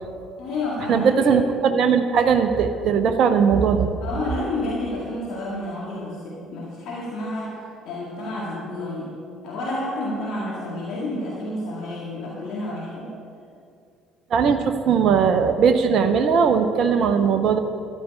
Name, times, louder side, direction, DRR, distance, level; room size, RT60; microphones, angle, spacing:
voice 1, 0.4-1.3 4.0-9.2 9.4-13.1, left 1 dB, 55° left, -5 dB, 2.0 m, -30 dB
voice 2, 0.9-3.9 14.3-17.6, right 6 dB, 50° right, 8 dB, 0.7 m, -19 dB
13.0 x 11.0 x 5.4 m, 2.5 s
figure-of-eight pair, 50°, 0 cm